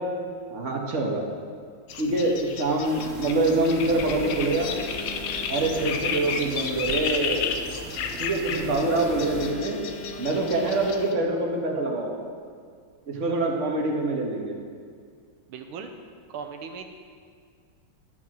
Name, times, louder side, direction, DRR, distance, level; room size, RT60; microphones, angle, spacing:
voice 1, 0.5-1.2 2.0-4.7 5.5-7.6 8.2-9.8 10.2-12.1 13.1-14.5, right 2 dB, 40° right, -1 dB, 1.8 m, -25 dB
sound 1, 1.9-11.1, left 6 dB, 80° left, 1.7 m, -33 dB
sound 2, 2.8-9.5, right 2 dB, 65° right, 2.1 m, -40 dB
Alarm, 3.8-6.3 8.8-11.3, left 2 dB, 60° left, 2.3 m, -41 dB
voice 2, 15.5-15.9 16.3-16.8, right 6 dB, 90° right, 5 dB, 1.7 m, -37 dB
11.5 x 8.4 x 6.3 m, 2.1 s
omnidirectional pair, 2.2 m